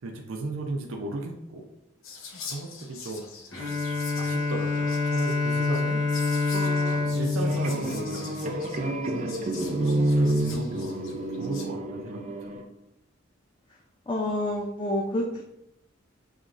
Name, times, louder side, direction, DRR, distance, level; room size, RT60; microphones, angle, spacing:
voice 1, 0.0-1.7 2.1-3.2 3.6-6.0 7.2-8.6 9.6-12.4, right 2 dB, 90° right, 2 dB, 0.6 m, -36 dB
Whispering, 2.0-11.6, left 5 dB, 85° left, 0.7 m, -44 dB
Bowed string instrument, 3.5-9.0, left 4 dB, 65° left, 1.3 m, -27 dB
sound 1, 6.5-12.6, right 1 dB, 35° right, 0.4 m, -29 dB
voice 2, 14.1-15.4, left 1 dB, 25° left, -1 dB, 0.4 m, -28 dB
6.2 x 3.0 x 2.5 m, 0.84 s
head